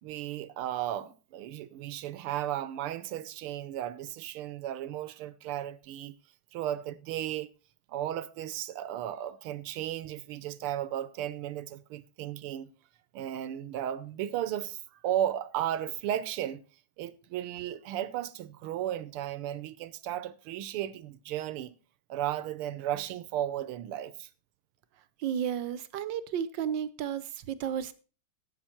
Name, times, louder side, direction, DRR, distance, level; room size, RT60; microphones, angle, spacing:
voice 1, 0.0-6.2 6.5-7.5 7.9-12.7 13.1-16.6 17.0-21.7 22.1-24.3, right 11 dB, 80° right, 1.7 m, -35 dB
voice 2, 25.2-27.9, right 9 dB, 65° right, 1.4 m, -33 dB
11.5 x 8.8 x 4.4 m
omnidirectional pair, 2.4 m